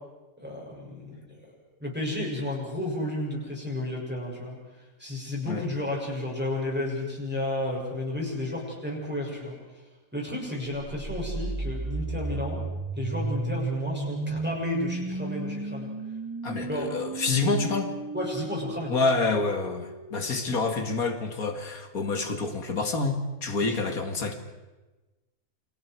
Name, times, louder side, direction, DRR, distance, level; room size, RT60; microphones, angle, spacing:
voice 1, 0.4-1.4 1.8-4.6 5.0-9.6 10.1-12.6 12.9-15.9 16.6-16.9 18.1-18.9 23.7-23.8, left 1 dB, 5° right, -3 dB, 6.9 m, -32 dB
sound 1, 10.8-20.7, right 3 dB, 30° right, 0.3 m, -34 dB
voice 2, 16.4-17.9 18.9-24.3, left 3 dB, 65° left, 6 dB, 2.6 m, -27 dB
29.0 x 27.0 x 4.7 m, 1.1 s
omnidirectional pair, 1.6 m